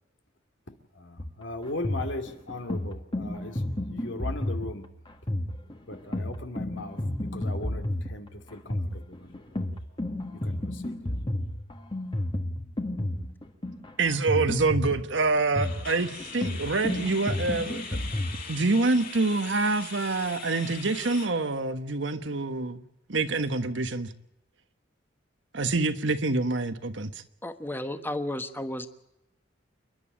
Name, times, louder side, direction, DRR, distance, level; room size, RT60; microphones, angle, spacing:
voice 1, 0.9-4.9 5.9-9.4 10.3-11.1, left 2 dB, 75° left, 6 dB, 2.5 m, -38 dB
sound 1, 1.2-18.4, left 1 dB, 25° left, 1.7 m, -32 dB
sound 2, 9.4-9.6 9.9-10.1 10.6-10.7 15.5-21.3, left 5 dB, 50° left, 6.3 m, -41 dB
voice 2, 14.0-18.0 18.5-22.8 23.1-24.1 25.5-27.1, right 3 dB, 70° right, 9 dB, 1.3 m, -26 dB
voice 3, 27.4-28.9, left 1 dB, 10° left, 9 dB, 1.2 m, -33 dB
29.0 x 11.0 x 8.7 m, 0.85 s
head